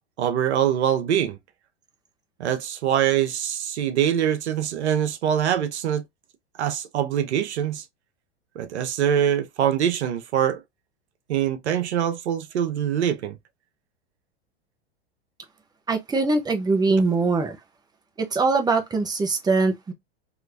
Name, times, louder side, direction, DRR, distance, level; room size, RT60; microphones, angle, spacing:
voice 1, 0.2-1.4 2.4-6.0 6.6-7.8 8.6-10.6 11.3-13.4, right 9 dB, 75° right, 0.8 m, -24 dB
voice 2, 15.9-17.6 18.2-19.9, right 3 dB, 10° right, 0.9 m, -22 dB
3.0 x 3.0 x 2.5 m
hypercardioid pair, 100°, 34 cm